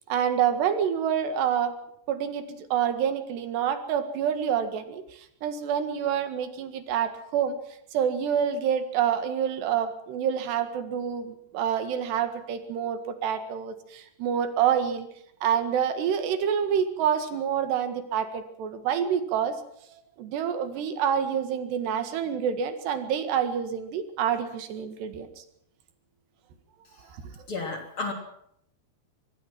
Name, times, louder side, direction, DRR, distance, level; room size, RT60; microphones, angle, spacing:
voice 1, 0.1-1.7 2.1-5.0 5.4-7.5 7.9-15.1 15.4-19.5 19.9-25.3, right 8 dB, 85° right, 9 dB, 4.0 m, -27 dB
voice 2, 27.5-28.1, left 3 dB, 35° left, 3 dB, 3.5 m, -32 dB
24.5 x 19.5 x 6.0 m, 0.72 s
omnidirectional pair, 4.7 m